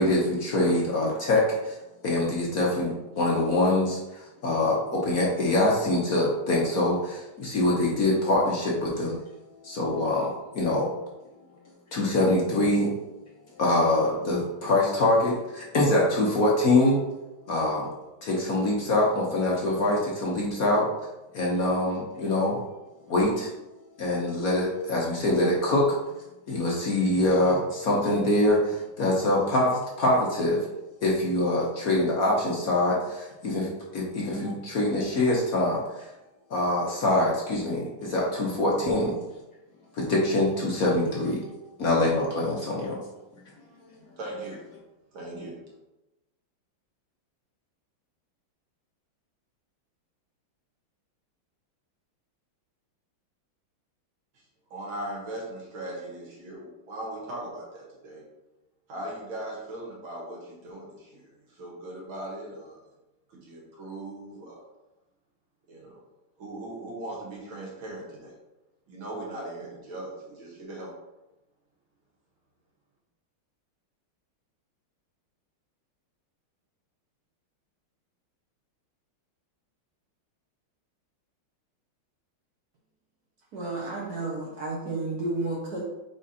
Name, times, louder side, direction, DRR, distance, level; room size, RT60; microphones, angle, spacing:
voice 1, 0.0-1.8 2.0-9.2 9.6-10.9 11.9-12.9 13.6-17.0 17.5-17.9 18.2-20.9 21.3-22.6 23.1-23.5 24.0-25.9 26.5-30.6 31.0-35.8 36.5-39.2 39.9-43.0, left 1 dB, 50° left, -3 dB, 1.2 m, -24 dB
voice 2, 44.2-44.6 45.1-45.6 54.7-58.2 58.9-62.8 63.3-64.6 65.7-66.0 66.4-68.3 68.9-70.9, right 1 dB, 70° right, -3 dB, 2.5 m, -39 dB
voice 3, 83.5-85.8, right 2 dB, 55° right, -3 dB, 1.3 m, -31 dB
5.0 x 4.7 x 4.2 m, 0.99 s
omnidirectional pair, 2.3 m